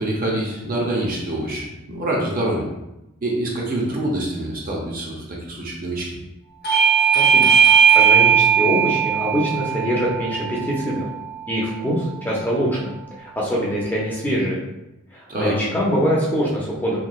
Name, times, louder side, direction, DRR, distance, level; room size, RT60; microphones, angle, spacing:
voice 1, 0.0-2.7 3.2-6.2 15.3-15.6, right 1 dB, 45° right, -2 dB, 0.7 m, -25 dB
Bell / Doorbell, 6.6-11.8, right 7 dB, 50° left, 0.9 m, -18 dB
voice 2, 7.1-7.5 7.9-11.1 11.5-12.9 13.2-14.6 15.1-17.0, equal, 10° left, -5 dB, 0.6 m, -23 dB
3.0 x 2.9 x 2.3 m, 0.91 s
head